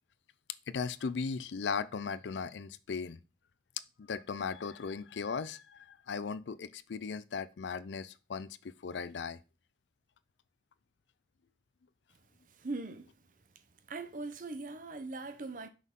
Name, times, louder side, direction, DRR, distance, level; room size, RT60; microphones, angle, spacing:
voice 1, 0.7-3.2 4.0-8.6 8.8-9.4, left 5 dB, 85° left, 0.5 m, -37 dB
voice 2, 12.5-13.1 13.9-15.7, right 3 dB, 50° right, 0.7 m, -40 dB
6.3 x 5.5 x 3.7 m
head